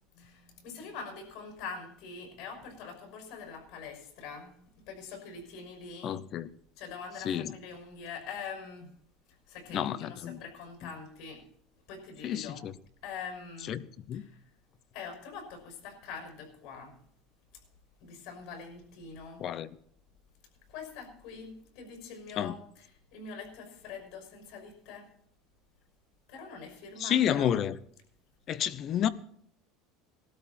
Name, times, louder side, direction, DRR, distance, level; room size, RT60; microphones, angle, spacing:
voice 1, 0.1-4.5 4.9-6.2 6.8-8.9 9.5-11.4 11.9-12.6 13.0-13.7 14.1-14.4 14.9-17.0 18.0-19.4 20.7-25.1 26.3-27.5, left 5 dB, 65° left, 5.8 m, -44 dB
voice 2, 6.0-6.5 7.2-7.5 9.7-10.4 10.8-10.9 12.2-12.7 13.7-13.8 14.1-14.2 19.4-19.7 22.4-22.5 27.0-27.8 28.5-29.1, left 10 dB, 40° left, 0.8 m, -30 dB
19.0 x 12.5 x 4.4 m
supercardioid pair, 140°, 0 cm